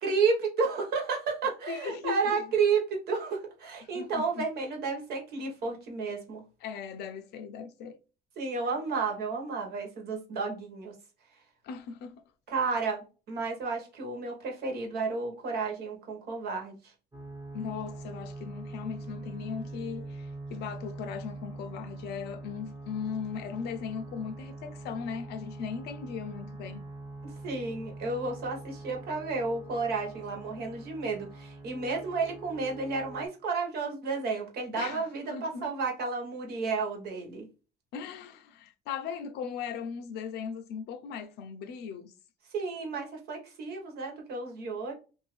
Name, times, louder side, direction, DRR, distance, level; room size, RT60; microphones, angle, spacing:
voice 1, 0.0-6.4 8.4-10.9 12.5-16.9 27.4-37.4 42.5-44.9, right 4 dB, 70° right, 1.3 m, -32 dB
voice 2, 1.7-2.5 3.8-4.5 6.6-8.0 11.6-12.2 17.5-26.8 34.8-35.7 37.9-42.1, left 7 dB, 80° left, 0.6 m, -38 dB
sound 1, 17.1-33.3, right 2 dB, 25° right, 1.0 m, -43 dB
2.7 x 2.6 x 3.1 m
cardioid pair, 110°, 17 cm